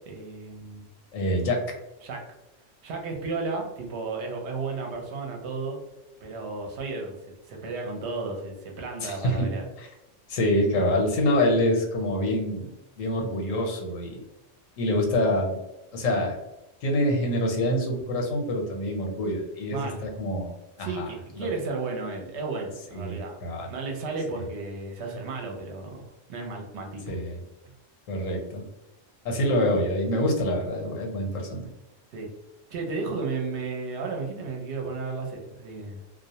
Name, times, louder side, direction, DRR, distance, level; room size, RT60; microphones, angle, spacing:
voice 1, 0.1-0.9 2.0-2.2 2.8-5.8 6.2-7.2 7.5-9.7 19.7-20.1 20.8-23.4 23.7-26.0 26.3-27.1 32.1-32.3 32.7-36.0, right 3 dB, 70° right, 1 dB, 0.8 m, -33 dB
voice 2, 1.1-1.6 9.0-9.5 9.8-9.9 10.3-14.2 14.8-15.6 15.9-16.4 16.8-21.1 21.4-21.5 22.9-23.7 27.1-27.4 28.1-28.6 29.2-31.7, left 1 dB, 90° left, 1 dB, 1.1 m, -26 dB
2.3 x 2.1 x 2.7 m, 0.93 s
omnidirectional pair, 1.3 m